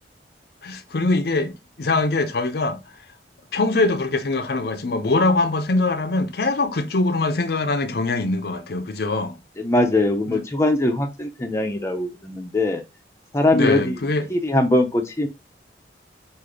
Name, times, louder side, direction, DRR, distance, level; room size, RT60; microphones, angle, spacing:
voice 1, 0.6-1.5 1.8-2.8 3.5-9.3 10.3-10.4 13.5-14.3, left 3 dB, 60° left, 0.6 m, -22 dB
voice 2, 9.6-12.8 13.3-14.0 14.3-15.3, left 1 dB, 15° left, 0.6 m, -21 dB
4.8 x 2.6 x 3.7 m
head